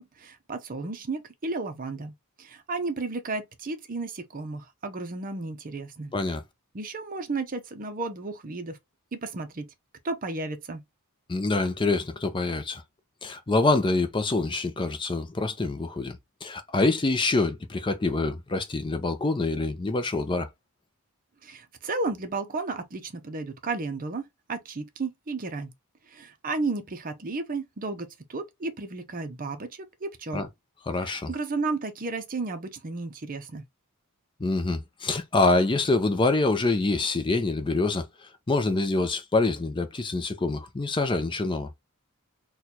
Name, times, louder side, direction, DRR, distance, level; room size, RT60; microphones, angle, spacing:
voice 1, 0.0-2.1 2.4-6.1 6.7-8.8 9.1-9.7 10.0-10.8 21.4-25.7 26.1-30.4 31.0-33.6, right 3 dB, 40° right, 0.6 m, -33 dB
voice 2, 11.3-12.8 13.2-20.5 30.3-30.5 30.9-31.3 34.4-41.7, left 3 dB, 20° left, 0.4 m, -26 dB
4.2 x 2.3 x 2.8 m
head